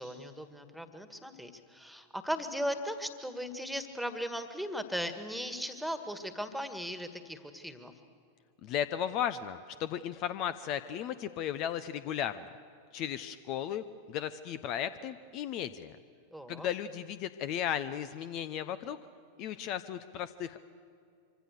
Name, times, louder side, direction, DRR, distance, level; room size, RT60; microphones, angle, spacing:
voice 1, 0.0-7.9 16.3-16.7, equal, ahead, 9 dB, 1.9 m, -37 dB
voice 2, 8.6-12.5 12.9-15.9 16.5-19.0 19.4-20.6, left 10 dB, 40° left, 13 dB, 0.8 m, -35 dB
25.5 x 25.0 x 6.7 m, 2.4 s
figure-of-eight pair, 90°, 0 cm